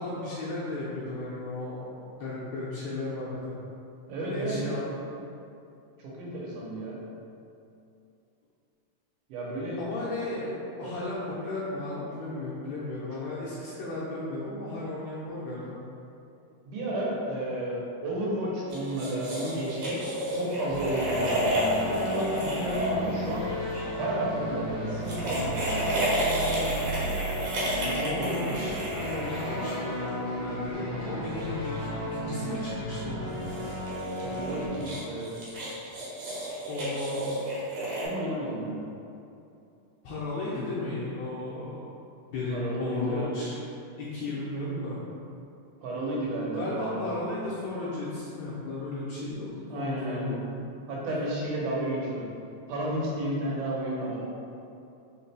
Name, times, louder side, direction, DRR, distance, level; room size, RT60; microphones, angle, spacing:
voice 1, 0.0-3.5 4.2-4.8 9.8-15.7 28.0-33.2 36.7-37.3 40.0-41.9 42.3-43.5 44.0-45.0 46.5-50.6, left 2 dB, 80° left, -8 dB, 1.6 m, -34 dB
voice 2, 4.1-4.8 6.0-7.0 9.3-9.8 16.7-20.0 20.3-23.5 23.9-26.1 27.8-28.7 34.2-35.3 37.1-37.2 38.0-38.7 42.5-43.3 45.8-47.0 49.7-50.3 50.9-52.3 52.7-54.3, right 1 dB, 85° right, -5 dB, 2.4 m, -32 dB
sound 1, 18.7-23.8 24.9-30.1 33.3-38.1, equal, 70° right, 2.2 m, -31 dB
sound 2, 20.7-34.7, equal, 65° left, 2.0 m, -34 dB
4.8 x 4.1 x 2.2 m, 2.7 s
omnidirectional pair, 3.6 m